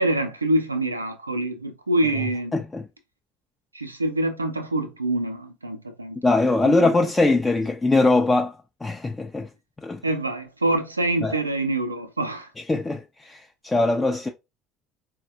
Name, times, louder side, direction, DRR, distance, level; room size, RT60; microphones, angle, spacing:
voice 1, 0.0-2.5 3.7-6.2 6.6-6.8 10.0-12.5, right 1 dB, 90° right, 0.4 m, -25 dB
voice 2, 2.5-2.9 6.2-9.5 9.8-10.0 11.2-11.4 12.7-14.3, left 2 dB, 15° left, 0.4 m, -22 dB
3.9 x 2.1 x 2.6 m
figure-of-eight pair, 60°, 0 cm